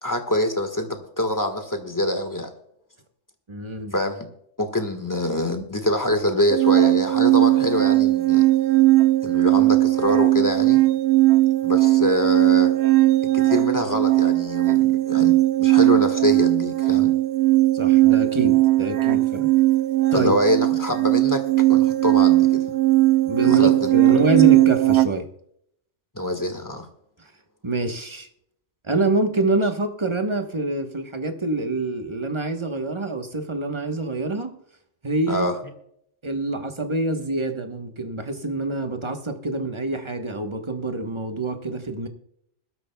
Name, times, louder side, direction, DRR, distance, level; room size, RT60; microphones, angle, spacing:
voice 1, 0.0-2.5 3.9-4.3 4.6-8.4 9.2-10.8 11.6-12.7 13.3-17.1 20.1-21.4 21.7-22.6 23.4-24.2 26.1-26.9 35.3-35.5, left 1 dB, 15° left, 6 dB, 1.5 m, -25 dB
voice 2, 3.5-3.9 17.7-19.5 20.1-20.3 23.2-25.3 27.2-27.3 27.6-28.3 28.8-34.5 35.0-35.5 36.2-42.1, right 2 dB, 25° right, 6 dB, 1.1 m, -26 dB
sound 1, 6.5-25.1, right 17 dB, 70° right, 0.9 m, -18 dB
21.5 x 12.5 x 2.3 m, 0.71 s
omnidirectional pair, 1.2 m